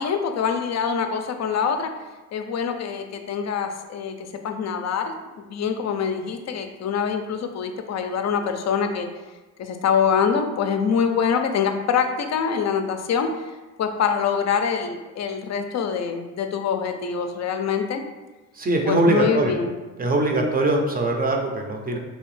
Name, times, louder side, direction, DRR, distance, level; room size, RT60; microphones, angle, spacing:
voice 1, 0.0-1.9 2.3-9.1 9.6-13.5 13.8-18.0 18.8-19.7, left 6 dB, 45° left, 6 dB, 0.5 m, -25 dB
voice 2, 18.5-19.5 20.0-22.0, right 2 dB, 25° right, 2 dB, 0.6 m, -22 dB
3.2 x 2.9 x 3.1 m, 1.2 s
cardioid pair, 80°, 37 cm